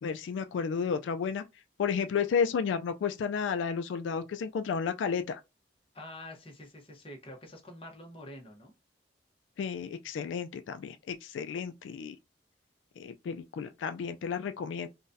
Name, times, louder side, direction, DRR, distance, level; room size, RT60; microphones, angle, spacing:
voice 1, 0.0-1.4 1.8-5.4 9.6-12.2 13.0-14.9, left 6 dB, 85° left, 0.3 m, -32 dB
voice 2, 5.9-8.7, left 1 dB, 30° left, 0.8 m, -47 dB
3.8 x 2.2 x 2.6 m
head